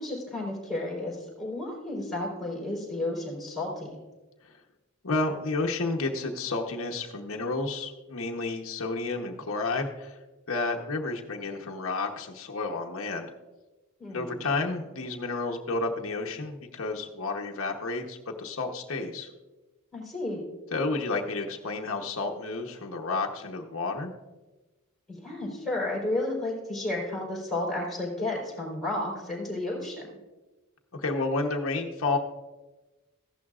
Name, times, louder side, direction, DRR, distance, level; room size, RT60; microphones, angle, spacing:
voice 1, 0.0-3.9 14.0-14.4 19.9-20.4 25.1-30.1, left 2 dB, ahead, -4 dB, 4.1 m, -32 dB
voice 2, 5.0-10.2 10.5-13.3 14.1-19.3 20.7-24.1 30.9-32.2, left 3 dB, 65° left, 1 dB, 1.0 m, -31 dB
15.0 x 11.0 x 2.4 m, 1.2 s
head